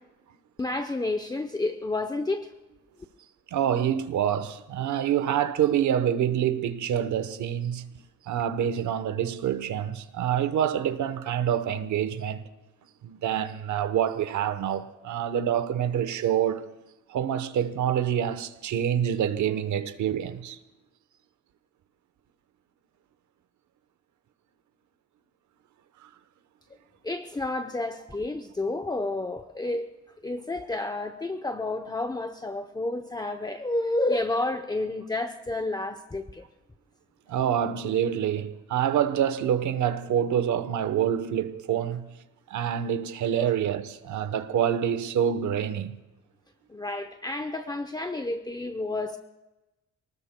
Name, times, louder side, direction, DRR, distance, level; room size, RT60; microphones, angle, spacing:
voice 1, 0.6-2.5 27.0-29.9 30.2-36.4 43.4-43.5 46.7-49.2, left 2 dB, 15° left, 0.7 m, -30 dB
voice 2, 3.5-7.8 8.3-12.4 13.0-16.7 17.1-20.6 26.0-26.1 37.3-42.0 42.5-46.0, right 9 dB, 80° right, 1.0 m, -26 dB
27.5 x 19.0 x 2.2 m
cardioid pair, 115°, 29 cm